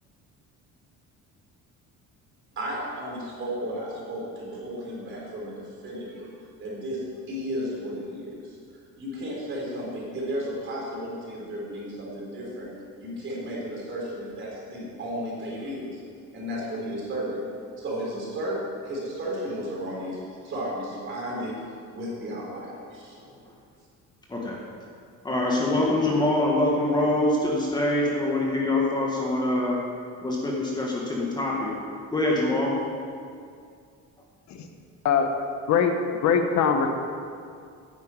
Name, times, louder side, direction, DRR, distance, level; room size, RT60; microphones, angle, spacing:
voice 1, 2.6-5.5 5.8-6.3 6.6-8.6 9.0-12.7 13.0-16.0 16.3-17.4 17.8-21.6 21.9-23.2, equal, 40° right, -4 dB, 4.0 m, -33 dB
voice 2, 25.2-29.8 30.2-31.7 32.1-32.8, left 1 dB, 15° left, -3 dB, 1.7 m, -24 dB
voice 3, 36.2-36.9, left 7 dB, 60° left, 5 dB, 1.2 m, -21 dB
10.0 x 8.1 x 8.9 m, 2.3 s
cardioid pair, 170°, 31 cm